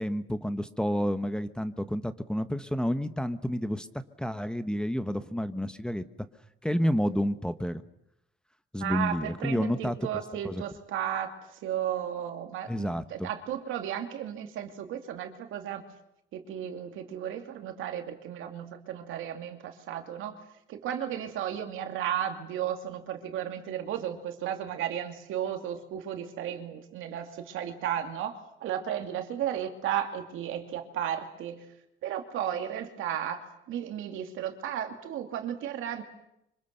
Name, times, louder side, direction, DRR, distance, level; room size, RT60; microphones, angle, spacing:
voice 1, 0.0-6.0 6.6-7.8 8.7-10.6 12.7-13.3, equal, 5° left, 10 dB, 1.3 m, -30 dB
voice 2, 8.8-15.8 16.3-20.4 20.7-31.7 32.0-36.0, right 10 dB, 85° right, 5 dB, 2.6 m, -34 dB
26.0 x 25.5 x 6.7 m, 0.82 s
cardioid pair, 90°, 20 cm